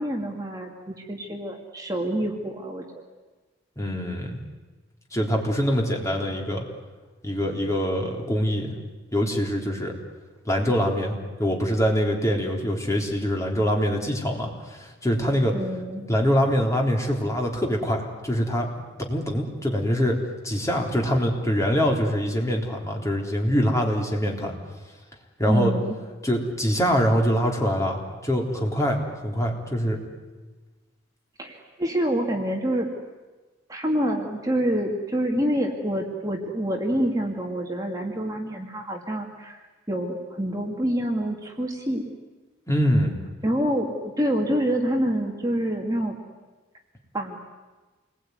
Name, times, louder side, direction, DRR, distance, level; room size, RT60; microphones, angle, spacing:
voice 1, 0.0-3.0 15.5-16.1 25.5-25.9 31.4-32.9 33.7-39.6 39.9-42.0 43.4-46.2 47.1-47.4, equal, 20° right, 1 dB, 2.3 m, -27 dB
voice 2, 3.8-4.4 5.1-6.6 7.2-8.7 9.1-9.9 10.5-15.6 16.1-18.7 19.0-20.2 20.4-24.5 25.4-25.7 26.2-29.0 29.2-30.0 42.7-43.1, equal, 15° left, 0 dB, 3.8 m, -24 dB
28.0 x 21.5 x 9.6 m, 1.3 s
head